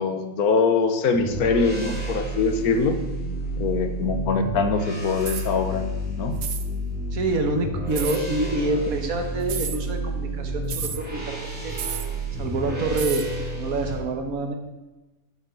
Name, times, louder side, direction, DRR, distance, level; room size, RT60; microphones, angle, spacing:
voice 1, 0.0-3.0 3.6-5.9 6.2-6.4, left 4 dB, 85° left, 8 dB, 1.5 m, -23 dB
sound 1, 1.1-13.9, right 1 dB, 5° right, 3.3 m, -30 dB
sound 2, 5.2-5.5 6.4-6.7 7.9-8.2 9.4-9.8 10.7-11.0 11.8-12.1 13.0-13.3, right 8 dB, 55° right, 1.0 m, -31 dB
voice 2, 7.1-11.8 12.4-13.2 13.5-14.6, right 2 dB, 75° right, 4 dB, 1.7 m, -27 dB
9.0 x 7.2 x 6.9 m, 1.1 s
omnidirectional pair, 1.5 m